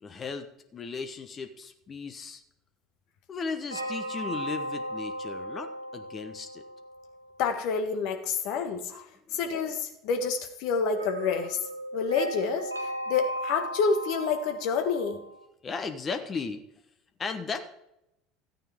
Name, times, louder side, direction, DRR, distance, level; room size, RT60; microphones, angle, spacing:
voice 1, 0.0-0.5 0.7-2.4 3.3-6.6 9.3-9.4 15.6-16.6 17.2-17.6, left 5 dB, 30° left, 7 dB, 1.1 m, -36 dB
sound 1, 3.7-7.3 10.9-15.4, right 1 dB, 90° right, 0.8 m, -36 dB
voice 2, 7.4-9.0 9.3-11.6 11.9-15.2, left 5 dB, 55° left, 6 dB, 1.6 m, -28 dB
14.0 x 9.1 x 3.6 m, 0.83 s
figure-of-eight pair, 70°, 0 cm